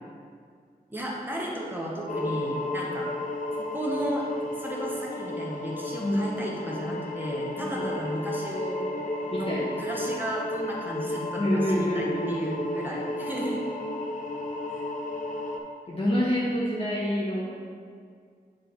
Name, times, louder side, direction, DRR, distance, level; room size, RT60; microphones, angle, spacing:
voice 1, 0.9-3.1 3.5-4.3 4.6-8.8 9.3-13.6 14.8-14.9, equal, 10° right, -4 dB, 1.1 m, -34 dB
sound 1, 2.1-15.6, left 1 dB, 55° left, 0.7 m, -33 dB
voice 2, 6.0-6.4 7.6-7.8 9.3-9.7 11.4-12.5 15.9-17.5, equal, 35° left, -7 dB, 1.1 m, -27 dB
8.6 x 3.4 x 4.6 m, 2.1 s
wide cardioid pair, 75°, 16 cm